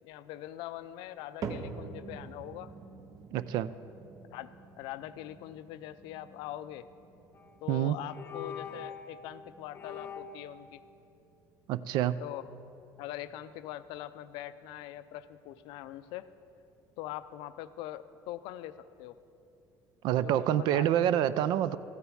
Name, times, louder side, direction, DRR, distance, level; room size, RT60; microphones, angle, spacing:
voice 1, 0.0-2.7 4.3-6.9 7.6-10.8 12.2-12.5 13.0-16.3 17.0-19.2 20.2-21.0, left 13 dB, 80° left, 14 dB, 0.4 m, -42 dB
sound 1, 1.4-17.7 18.1-18.6 19.2-19.3 20.1-20.2, right 5 dB, 45° right, 0.8 m, -48 dB
voice 2, 3.3-3.7 7.7-8.0 11.7-12.2 20.0-21.8, right 11 dB, 65° right, 15 dB, 0.4 m, -27 dB
sound 2, 7.3-7.6 8.0-9.2 9.7-10.5, left 7 dB, 30° left, 0.5 m, -43 dB
14.0 x 8.1 x 4.9 m, 2.8 s
cardioid pair, 145°, 8 cm